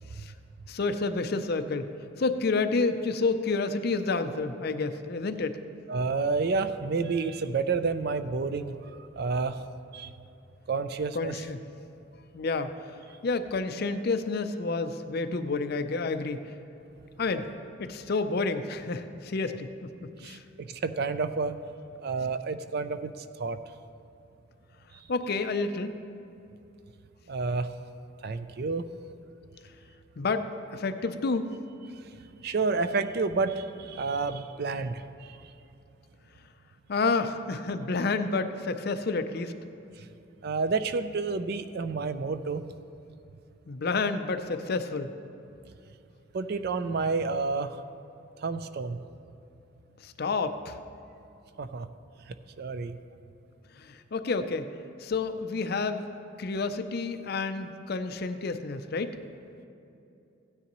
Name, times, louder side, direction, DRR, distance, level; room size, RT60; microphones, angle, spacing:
voice 1, 0.7-1.9 2.2-5.6 11.1-11.6 12.3-12.7 13.2-16.5 17.2-17.5 17.8-19.9 20.2-20.4 25.1-26.0 30.2-31.5 36.9-39.5 43.7-45.1 50.0-50.8 53.8-54.7 55.0-56.1 56.4-59.2, left 3 dB, 50° left, 9 dB, 0.5 m, -29 dB
voice 2, 5.9-9.6 9.9-10.1 10.7-11.4 20.2-21.6 22.0-23.6 24.9-25.1 27.3-27.7 28.2-28.9 31.9-35.5 40.0-40.1 40.4-42.6 46.3-47.8 48.4-49.0 51.6-51.9 52.3-53.0, right 4 dB, 50° right, 11 dB, 0.4 m, -30 dB
15.5 x 9.8 x 3.0 m, 2.7 s
head